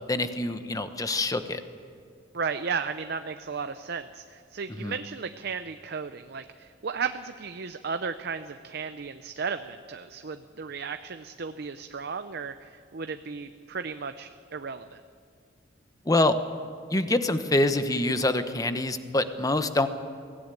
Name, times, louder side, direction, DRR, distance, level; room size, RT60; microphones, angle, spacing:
voice 1, 0.1-1.6 4.8-4.9 16.1-16.3 16.9-19.9, left 2 dB, 20° left, 9 dB, 1.0 m, -25 dB
voice 2, 2.3-15.0, right 5 dB, 60° right, 9 dB, 0.6 m, -34 dB
22.5 x 16.5 x 9.2 m, 2.2 s
head